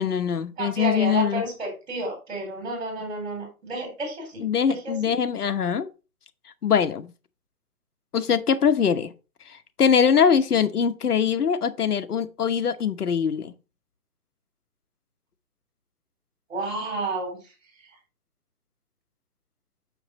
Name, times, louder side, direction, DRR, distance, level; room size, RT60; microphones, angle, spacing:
voice 1, 0.0-1.5 4.4-5.9 6.6-7.1 8.1-9.1 9.5-13.5, left 7 dB, 85° left, 1.1 m, -22 dB
voice 2, 0.6-4.9 16.5-17.4, right 2 dB, 45° right, 4.1 m, -31 dB
6.7 x 5.9 x 4.0 m
hypercardioid pair, 160°, 44 cm